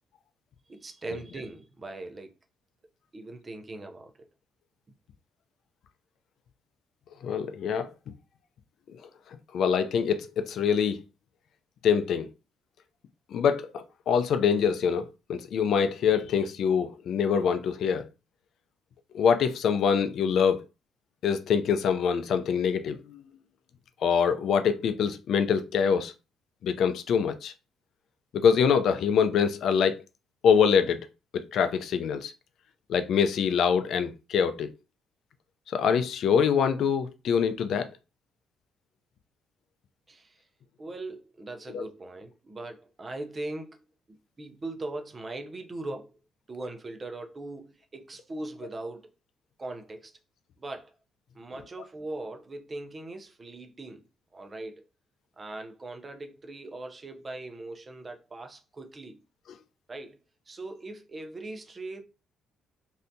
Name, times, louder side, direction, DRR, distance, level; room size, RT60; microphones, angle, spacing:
voice 1, 0.7-2.3 3.1-4.1 40.1-40.4 40.8-43.8 44.4-46.1 46.5-49.0 49.6-50.1 50.6-50.9 51.3-54.0 54.3-54.8 55.4-59.2 59.9-60.2 60.5-62.0, right 2 dB, 25° right, 0.5 m, -40 dB
voice 2, 7.2-7.9 9.5-11.0 11.8-12.3 13.3-15.0 15.3-18.0 19.1-20.6 21.2-23.2 24.0-26.1 26.6-27.5 28.3-30.0 30.4-31.1 31.3-32.3 32.9-34.7 35.7-37.9 41.7-41.9, left 7 dB, 65° left, 0.4 m, -24 dB
3.3 x 2.7 x 2.6 m
cardioid pair, 115°, 0 cm